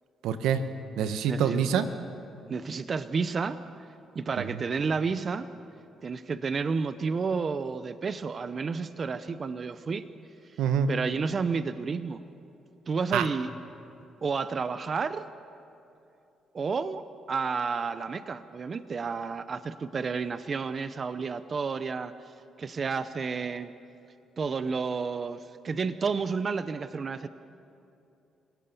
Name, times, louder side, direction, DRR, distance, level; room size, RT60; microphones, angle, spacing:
voice 1, 0.2-0.6 1.0-1.9 10.6-10.9 13.1-13.3, right 7 dB, 85° right, 10 dB, 1.1 m, -25 dB
voice 2, 1.3-1.6 2.5-3.6 4.1-5.5 6.0-10.1 10.9-12.2 12.9-13.5 14.2-15.2 16.5-17.0 17.3-22.1 22.6-23.7 24.4-27.3, right 5 dB, 40° right, 12 dB, 0.7 m, -31 dB
29.0 x 17.0 x 7.0 m, 2.7 s
cardioid pair, 90°, 0 cm